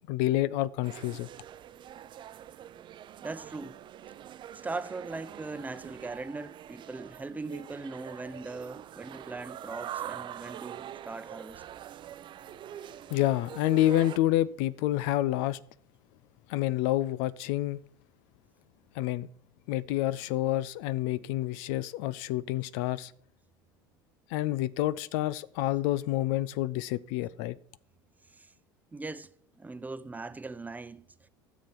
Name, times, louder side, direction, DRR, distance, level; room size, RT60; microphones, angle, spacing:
voice 1, 0.1-1.3 13.1-15.6 16.5-17.8 18.9-19.3 19.7-23.1 24.3-27.6, left 15 dB, 70° left, 0.5 m, -28 dB
sound 1, 0.8-14.2, right 11 dB, 45° right, 0.6 m, -44 dB
voice 2, 3.2-3.8 4.6-11.6 28.3-28.5 28.9-29.3 29.6-31.1, right 3 dB, 15° right, 0.8 m, -40 dB
13.0 x 7.0 x 6.0 m
hypercardioid pair, 80°, 12 cm